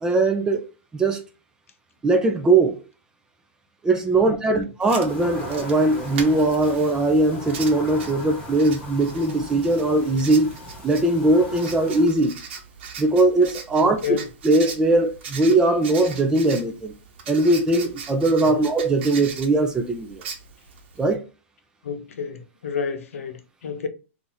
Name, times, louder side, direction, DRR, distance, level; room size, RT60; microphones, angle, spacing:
voice 1, 0.0-0.7 0.9-1.2 2.0-2.8 3.8-10.5 10.8-12.4 13.0-14.2 14.4-16.9 17.3-20.2 21.0-21.2, right 2 dB, 10° right, 0.4 m, -20 dB
voice 2, 4.2-4.6 13.8-14.2 18.4-18.7 21.8-23.9, left 6 dB, 90° left, 0.7 m, -30 dB
Writing, 4.8-21.1, right 5 dB, 55° right, 0.9 m, -40 dB
sound 1, 5.1-12.1, left 1 dB, 15° left, 1.1 m, -39 dB
2.8 x 2.5 x 3.9 m
hypercardioid pair, 155°, 7 cm